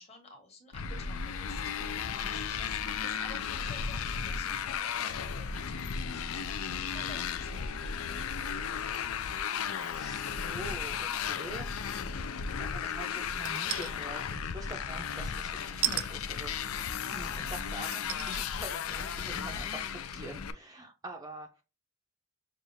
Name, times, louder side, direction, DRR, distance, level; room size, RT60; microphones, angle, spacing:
voice 1, 0.0-8.2, left 3 dB, 30° left, 1.2 m, -52 dB
Motorcycle, 0.7-20.5, left 7 dB, 70° left, 0.4 m, -35 dB
voice 2, 9.7-12.0 12.6-21.6, right 1 dB, 15° right, 0.5 m, -45 dB
sound 1, 13.4-13.9 15.8-16.1 17.0-17.1 17.9-18.4 18.9-19.0, right 14 dB, 75° right, 0.4 m, -32 dB
6.5 x 2.4 x 2.6 m
head